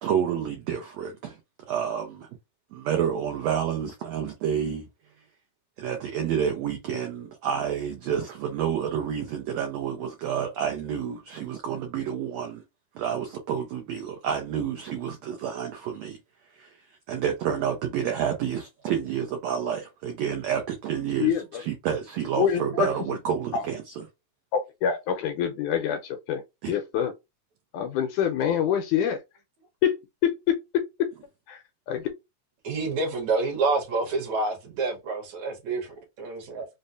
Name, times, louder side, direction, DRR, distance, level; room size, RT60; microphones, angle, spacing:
voice 1, 0.0-1.4 1.7-2.3 2.7-4.8 5.8-12.6 12.9-16.2 16.6-16.7 17.1-21.3 21.7-23.8 26.6-26.7, right 8 dB, 85° right, 1.5 m, -29 dB
voice 2, 21.2-21.6 22.4-23.0 23.5-23.7 24.5-26.4 26.7-27.1 27.7-29.2 29.8-30.6 31.5-32.1, left 8 dB, 80° left, 1.9 m, -26 dB
voice 3, 32.6-36.7, right 3 dB, 65° right, 2.2 m, -28 dB
5.4 x 2.1 x 2.5 m
omnidirectional pair, 3.8 m